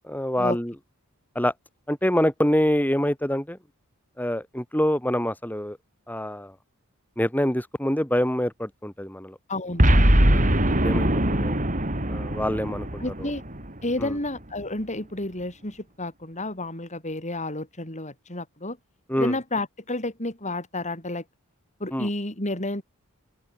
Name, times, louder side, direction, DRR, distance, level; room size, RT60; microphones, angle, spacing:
voice 1, 0.0-0.7 1.4-1.5 1.9-3.6 4.2-5.8 6.1-6.5 7.2-9.4 10.3-11.6 12.1-13.0 14.0-14.1 19.1-19.3 21.9-22.1, equal, 10° left, 5.7 m, -26 dB
voice 2, 9.5-10.2 13.0-13.4 13.8-18.8 19.2-21.2 21.8-22.8, left 2 dB, 35° left, 7.8 m, -31 dB
Boom, 9.8-14.2, right 1 dB, 35° right, 6.1 m, -21 dB
open air
head